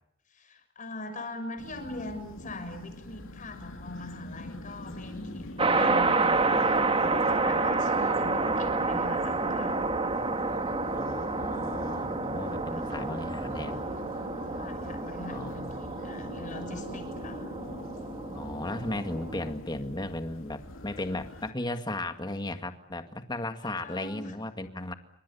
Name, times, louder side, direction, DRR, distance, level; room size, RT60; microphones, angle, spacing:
voice 1, 0.3-6.2 6.7-9.8 12.7-12.8 14.5-17.5 23.6-24.4, left 2 dB, 40° left, 7 dB, 6.5 m, -42 dB
sound 1, 1.6-21.5, left 1 dB, 70° left, 2.9 m, -44 dB
voice 2, 4.8-5.5 10.9-13.8 15.3-16.0 18.3-24.9, left 1 dB, 20° left, 7 dB, 2.0 m, -36 dB
sound 2, 5.6-19.5, right 3 dB, 25° right, 1.9 m, -29 dB
29.0 x 26.0 x 7.2 m, 0.73 s
head